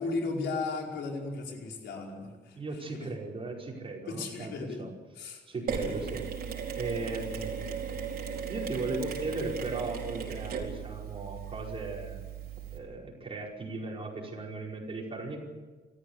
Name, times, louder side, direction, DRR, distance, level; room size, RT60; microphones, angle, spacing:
voice 1, 0.0-2.6 2.9-3.1 4.1-4.8 5.2-5.4 5.8-5.9, left 3 dB, 90° left, 1 dB, 4.9 m, -35 dB
voice 2, 2.5-4.9 5.5-6.2 6.8-7.7 8.5-12.2 12.7-15.4, right 3 dB, 30° right, -1 dB, 5.3 m, -37 dB
Mechanisms, 5.7-12.8, right 7 dB, 60° right, 4.4 m, -37 dB
28.0 x 14.0 x 8.2 m, 1.3 s
cardioid pair, 130°, 18 cm